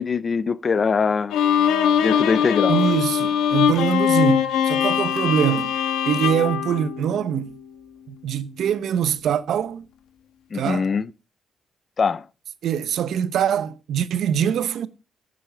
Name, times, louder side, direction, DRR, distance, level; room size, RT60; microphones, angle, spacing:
voice 1, 0.0-1.4 2.0-3.0 10.5-11.1 12.0-12.2, left 5 dB, 40° left, 0.5 m, -22 dB
Bowed string instrument, 1.3-7.6, left 9 dB, 85° left, 1.3 m, -21 dB
voice 2, 2.7-5.7 6.1-7.5 8.1-9.9 10.5-10.9 12.6-14.9, right 9 dB, 70° right, 0.8 m, -23 dB
9.1 x 7.6 x 5.0 m
cardioid pair, 90°, 0 cm